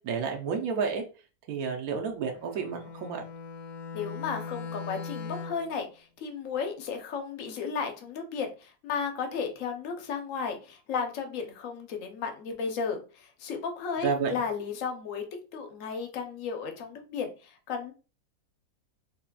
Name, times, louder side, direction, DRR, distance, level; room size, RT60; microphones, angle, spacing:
voice 1, 0.0-1.0 1.5-3.2 14.0-14.3, right 5 dB, 65° right, 3 dB, 0.9 m, -30 dB
Bowed string instrument, 2.4-5.8, left 5 dB, 90° left, 1.4 m, -40 dB
voice 2, 3.9-15.2 15.5-17.9, left 6 dB, 65° left, 5 dB, 0.8 m, -34 dB
4.9 x 2.8 x 2.2 m, 0.34 s
omnidirectional pair, 2.1 m